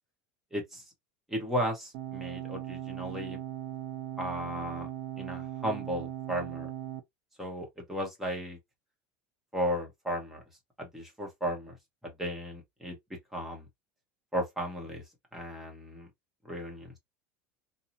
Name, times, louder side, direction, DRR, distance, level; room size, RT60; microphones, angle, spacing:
voice 1, 0.5-0.8 1.3-3.4 4.2-4.9 5.2-6.7 7.4-8.6 9.5-10.4 10.8-11.8 12.0-13.0 13.3-13.7 14.3-15.0 15.3-16.1 16.4-17.0, equal, 5° right, 0.8 m, -35 dB
sound 1, 1.9-7.0, right 13 dB, 60° right, 0.6 m, -39 dB
2.7 x 2.0 x 2.6 m
cardioid pair, 165°, 5 cm